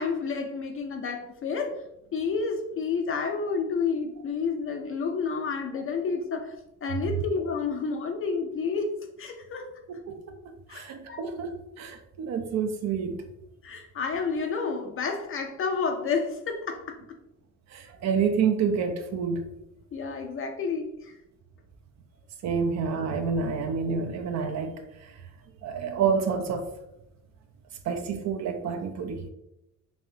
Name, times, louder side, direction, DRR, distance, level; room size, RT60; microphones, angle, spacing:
voice 1, 0.0-1.8 2.1-6.6 6.8-9.7 10.7-11.2 13.6-17.0 19.9-21.2, left 5 dB, 45° left, 3 dB, 0.4 m, -30 dB
voice 2, 9.9-13.3 17.7-19.5 22.4-25.1 25.6-26.7 27.9-29.3, right 6 dB, 60° right, 6 dB, 0.5 m, -28 dB
3.3 x 2.4 x 2.7 m, 0.87 s
cardioid pair, 80°, 30 cm